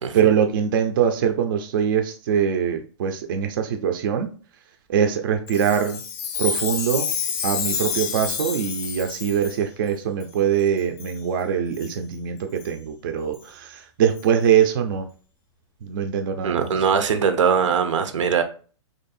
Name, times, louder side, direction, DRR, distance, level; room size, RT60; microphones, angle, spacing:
voice 1, 0.1-4.3 4.9-6.0 6.4-7.1 7.4-15.1 15.8-16.7, right 8 dB, 45° right, 5 dB, 0.5 m, -23 dB
Chime, 5.5-9.6 10.2-10.3 11.0-11.2 11.7-11.9 12.6-12.7 13.3-13.4 14.2-14.3, left 6 dB, 25° left, 0.5 m, -29 dB
voice 2, 16.4-18.4, right 6 dB, 85° right, 9 dB, 0.7 m, -21 dB
3.0 x 2.7 x 4.1 m, 0.40 s
hypercardioid pair, 160°, 16 cm